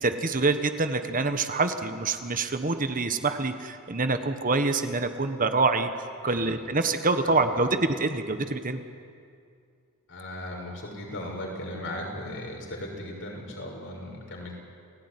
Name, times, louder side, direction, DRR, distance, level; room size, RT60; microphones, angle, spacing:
voice 1, 0.0-5.9 6.2-7.7 8.0-8.8, right 3 dB, 40° right, 8 dB, 1.4 m, -26 dB
voice 2, 7.2-7.7 10.1-14.6, left 1 dB, 60° left, 0 dB, 6.1 m, -37 dB
29.0 x 17.5 x 9.8 m, 2.3 s
head